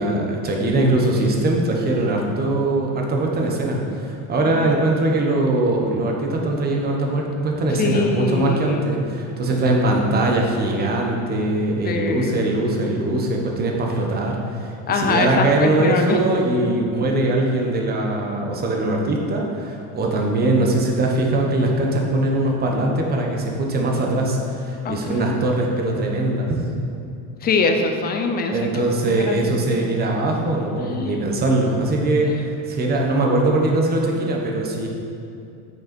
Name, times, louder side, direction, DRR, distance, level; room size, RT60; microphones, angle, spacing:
voice 1, 0.0-26.6 28.5-34.9, right 2 dB, 25° right, 0 dB, 1.1 m, -21 dB
voice 2, 4.4-4.8 7.8-9.0 11.8-12.6 14.9-16.2 24.8-25.4 27.4-28.7 29.0-29.9 30.8-31.3, left 3 dB, 25° left, 5 dB, 0.6 m, -24 dB
8.1 x 6.7 x 4.4 m, 2.6 s
cardioid pair, 150°, 38 cm